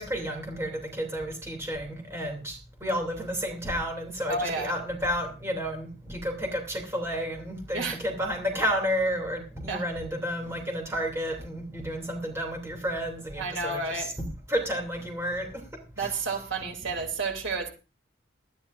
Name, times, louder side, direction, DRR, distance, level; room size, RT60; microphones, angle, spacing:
voice 1, 0.0-15.6 16.0-16.1, equal, 15° right, 1 dB, 2.8 m, -31 dB
voice 2, 4.3-4.8 7.7-8.0 9.7-9.8 13.4-14.1 16.0-17.7, right 3 dB, 80° right, 4 dB, 2.9 m, -31 dB
19.5 x 13.0 x 2.6 m, 0.31 s
head